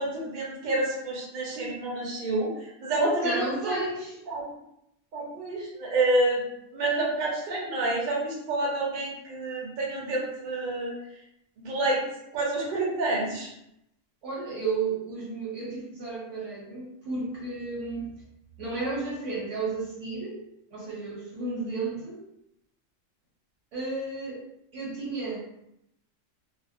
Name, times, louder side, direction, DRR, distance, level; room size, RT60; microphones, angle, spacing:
voice 1, 0.0-2.5 2.8-3.9 4.3-4.4 5.1-6.4 6.7-10.9 11.6-12.0 12.3-13.5, right 2 dB, 50° right, -4 dB, 0.7 m, -28 dB
voice 2, 3.2-4.2 14.2-18.1 18.6-20.4 20.7-22.2 23.7-24.4 24.7-25.4, right 3 dB, 75° right, -5 dB, 1.2 m, -33 dB
2.4 x 2.1 x 2.5 m, 0.80 s
omnidirectional pair, 1.3 m